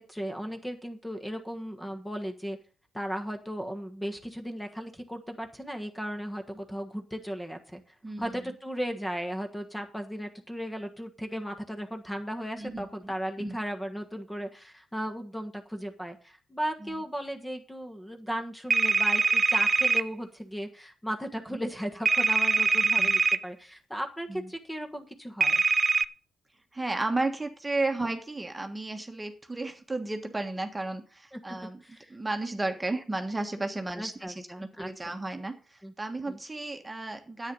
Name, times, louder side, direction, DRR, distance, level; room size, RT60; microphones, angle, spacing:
voice 1, 0.0-2.6 2.9-7.8 8.2-25.6 31.3-31.6 31.8-32.2 34.0-35.1 35.8-35.9 36.3-36.4, equal, 5° left, 4 dB, 1.5 m, -36 dB
voice 2, 8.0-8.4 12.6-13.1 13.4-13.6 16.8-17.0 21.5-21.6 23.0-23.1 24.3-24.5 26.7-31.8 32.1-37.5, right 2 dB, 15° right, 5 dB, 1.5 m, -33 dB
sound 1, 18.7-20.0 22.1-23.4 25.4-26.0, right 4 dB, 35° right, 0.6 m, -23 dB
10.0 x 8.6 x 5.5 m, 0.39 s
cardioid pair, 90°, 0 cm